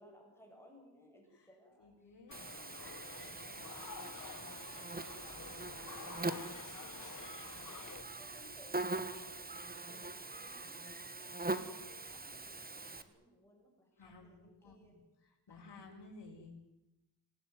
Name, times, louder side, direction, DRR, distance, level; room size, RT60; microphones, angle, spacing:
voice 1, 0.0-2.1 2.4-3.0 3.2-4.4 4.7-7.8 8.2-10.8 11.2-15.0 15.5-15.8, left 1 dB, 5° left, 0 dB, 7.6 m, -63 dB
voice 2, 1.8-2.7 14.0-16.6, left 3 dB, 70° left, -2 dB, 5.5 m, -56 dB
sound 1, 2.3-8.0, left 7 dB, 45° left, 1.2 m, -50 dB
Buzz, 2.3-13.0, right 2 dB, 20° right, 1.7 m, -42 dB
27.0 x 20.0 x 9.6 m, 0.98 s
wide cardioid pair, 165°, 41 cm